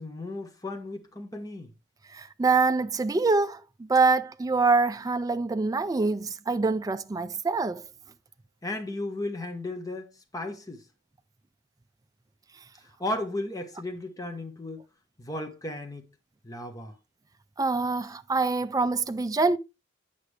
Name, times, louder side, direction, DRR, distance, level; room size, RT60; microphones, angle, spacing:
voice 1, 0.0-1.7 8.6-10.8 13.0-14.8 15.2-16.1 16.4-17.0, left 1 dB, 20° left, 1.0 m, -35 dB
voice 2, 2.1-3.6 3.9-7.8 17.6-19.6, right 3 dB, 20° right, 0.3 m, -25 dB
8.2 x 5.7 x 3.3 m
head